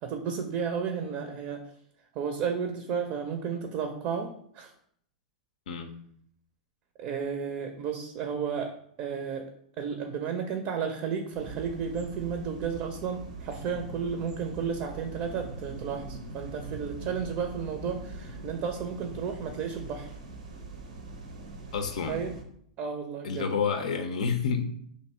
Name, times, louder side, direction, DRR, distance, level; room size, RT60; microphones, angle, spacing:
voice 1, 0.0-1.7 2.1-4.7 7.0-8.7 9.0-9.5 9.8-20.2 22.1-22.3 22.8-23.5, right 6 dB, 45° right, 5 dB, 0.5 m, -33 dB
sound 1, 11.3-22.4, right 3 dB, 80° right, 0.7 m, -42 dB
voice 2, 21.7-22.2 23.2-24.7, left 6 dB, 70° left, 6 dB, 0.4 m, -29 dB
3.0 x 2.7 x 4.3 m, 0.67 s
hypercardioid pair, 105°, 4 cm